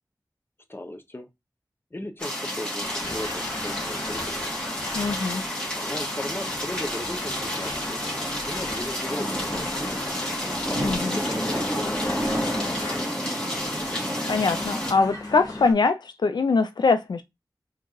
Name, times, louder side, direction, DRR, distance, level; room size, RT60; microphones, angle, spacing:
voice 1, 0.7-1.3 1.9-4.4 5.7-8.1 8.5-9.9 10.7-12.3, left 1 dB, 30° left, 0.8 m, -37 dB
sound 1, 2.2-14.9, equal, 15° left, 2.1 m, -30 dB
sound 2, 2.8-15.7, left 2 dB, 60° left, 1.7 m, -37 dB
voice 2, 4.9-5.4 10.8-11.2 14.3-17.2, left 4 dB, 80° left, 0.3 m, -23 dB
sound 3, 10.7-11.4 11.9-12.7 13.0-13.1, right 2 dB, 60° right, 0.9 m, -41 dB
4.4 x 3.6 x 3.0 m
wide cardioid pair, 60°, 7 cm